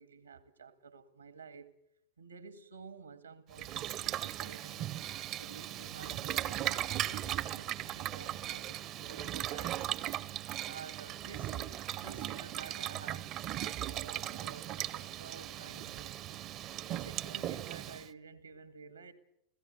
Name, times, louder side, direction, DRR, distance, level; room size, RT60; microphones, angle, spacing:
voice 1, 0.0-1.7 2.2-4.9 5.4-9.9 10.7-13.3 13.9-16.2 16.8-19.1, right 4 dB, 80° right, 12 dB, 2.0 m, -51 dB
Boiling, 3.5-18.1, right 12 dB, 35° right, 0.8 m, -38 dB
29.5 x 16.5 x 7.9 m, 0.77 s
figure-of-eight pair, 90°, 0 cm